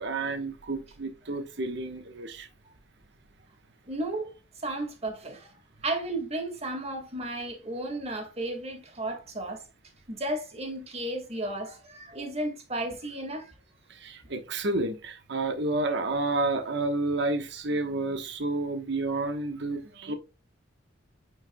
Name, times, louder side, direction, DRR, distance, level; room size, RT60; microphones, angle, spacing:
voice 1, 0.0-2.5 13.9-20.2, right 2 dB, 65° right, 1.1 m, -30 dB
voice 2, 3.9-4.3 4.6-5.5 5.8-9.6 10.1-13.5, right 1 dB, 35° right, 1.9 m, -33 dB
9.2 x 4.6 x 2.2 m
head